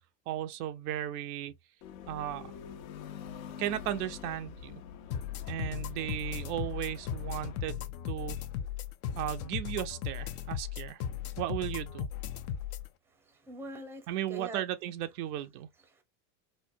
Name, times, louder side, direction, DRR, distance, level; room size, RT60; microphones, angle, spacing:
voice 1, 0.3-1.5 2.1-2.5 3.6-4.8 5.5-8.5 9.2-11.0 11.4-12.1 14.1-15.7, right 12 dB, 70° right, 0.7 m, -35 dB
sound 1, 1.8-7.6, left 8 dB, 60° left, 1.0 m, -46 dB
sound 2, 5.1-12.9, left 9 dB, 35° left, 0.4 m, -37 dB
voice 2, 13.3-14.6 15.9-16.0, right 2 dB, 5° right, 0.6 m, -44 dB
4.2 x 2.2 x 2.6 m
supercardioid pair, 130°, 47 cm